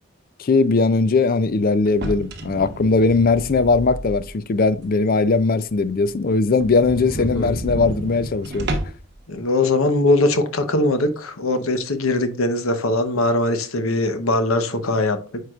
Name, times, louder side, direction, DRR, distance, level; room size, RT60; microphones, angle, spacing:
voice 1, 0.4-8.7, left 3 dB, 40° left, 0.4 m, -19 dB
sound 1, 1.9-4.4 4.8-4.9 5.4-5.5 5.7-5.8 6.1-6.2 6.5-9.1, right 1 dB, 50° right, 1.1 m, -31 dB
voice 2, 7.2-7.5 9.3-15.4, left 2 dB, 70° left, 0.9 m, -21 dB
9.1 x 4.7 x 2.4 m
head